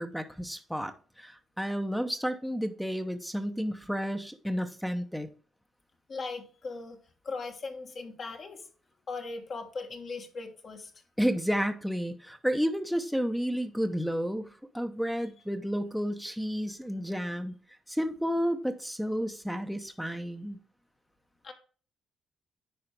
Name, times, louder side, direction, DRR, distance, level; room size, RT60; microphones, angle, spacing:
voice 1, 0.0-5.3 11.2-17.5 17.9-20.6, equal, ahead, 0.7 m, -31 dB
voice 2, 6.1-7.0 7.2-8.7 9.1-10.9 15.2-15.3 21.4-21.5, left 4 dB, 50° left, 1.4 m, -39 dB
9.9 x 4.7 x 3.4 m
cardioid pair, 90°, 0 cm